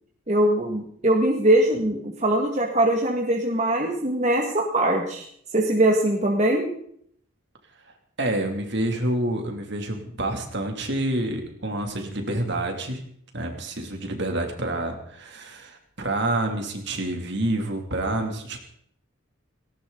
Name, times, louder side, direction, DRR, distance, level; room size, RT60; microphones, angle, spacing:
voice 1, 0.3-5.2 5.5-6.7, right 1 dB, 35° right, 0 dB, 2.1 m, -22 dB
voice 2, 8.2-13.0 13.3-18.6, right 1 dB, 55° right, 3 dB, 2.9 m, -28 dB
19.0 x 18.0 x 4.0 m, 0.65 s
head